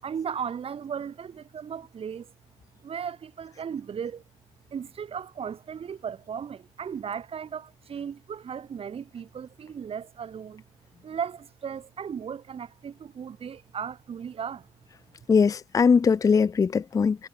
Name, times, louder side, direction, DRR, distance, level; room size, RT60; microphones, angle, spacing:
voice 1, 0.0-2.3 2.8-4.2 4.7-10.6 11.0-14.7, right 7 dB, 40° right, 6.1 m, -36 dB
voice 2, 15.3-17.3, left 5 dB, 25° left, 0.5 m, -21 dB
figure-of-eight pair, 45°, 14 cm